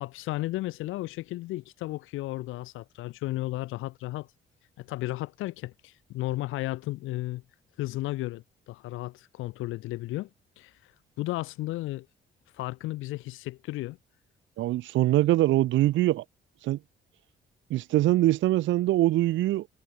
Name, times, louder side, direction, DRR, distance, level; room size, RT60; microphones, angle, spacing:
voice 1, 0.0-4.3 4.8-7.4 7.8-10.3 10.6-10.9 11.2-12.1 12.5-14.0, left 18 dB, 90° left, 0.6 m, -34 dB
voice 2, 14.6-16.2 16.6-16.8 17.7-19.7, right 15 dB, 75° right, 0.5 m, -23 dB
cardioid pair, 90°, 20 cm